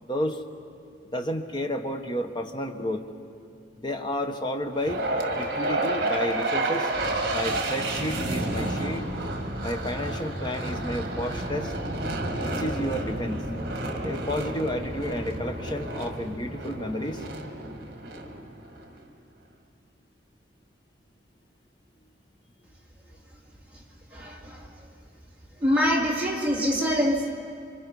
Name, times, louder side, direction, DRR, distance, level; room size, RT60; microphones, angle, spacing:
voice 1, 0.0-0.4 1.1-3.0 3.8-5.1 5.4-6.9 7.3-9.1 9.6-11.7 12.4-13.4 14.0-17.2, equal, 25° left, 5 dB, 1.1 m, -31 dB
sound 1, 4.8-19.0, right 1 dB, 55° right, 2.0 m, -30 dB
voice 2, 24.1-24.7 25.6-27.3, equal, 10° right, -4 dB, 2.5 m, -25 dB
27.0 x 25.0 x 5.4 m, 2.4 s
head